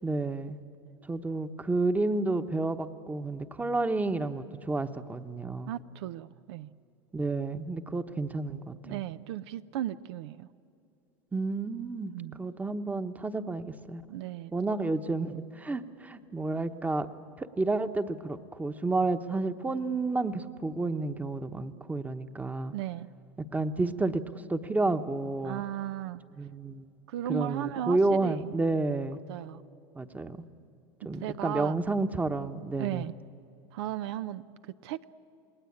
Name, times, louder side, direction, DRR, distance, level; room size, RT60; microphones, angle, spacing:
voice 1, 0.0-0.6 1.1-5.7 7.1-9.0 11.3-12.1 12.4-14.0 14.5-17.1 17.4-22.7 23.5-25.6 26.4-26.9 27.3-29.2 29.9-30.4 31.0-33.0, right 3 dB, 10° right, 9 dB, 1.1 m, -30 dB
voice 2, 5.7-6.7 8.8-10.5 12.1-12.4 14.1-14.5 22.7-23.1 25.4-26.2 27.1-28.5 29.3-29.6 31.2-31.8 32.8-33.1 33.7-35.0, right 12 dB, 75° right, 13 dB, 0.7 m, -36 dB
28.5 x 20.0 x 8.7 m, 2.7 s
supercardioid pair, 110°, 14 cm